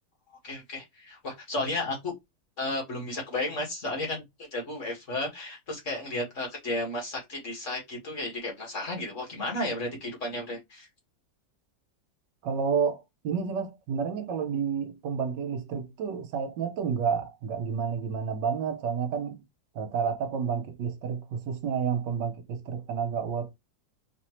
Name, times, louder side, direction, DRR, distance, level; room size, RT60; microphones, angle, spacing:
voice 1, 0.4-2.1 2.6-4.2 4.5-10.9, left 2 dB, 45° left, 1.9 m, -33 dB
voice 2, 12.4-19.4 19.7-23.5, right 6 dB, 80° right, 1.3 m, -30 dB
4.1 x 3.0 x 3.0 m
omnidirectional pair, 1.9 m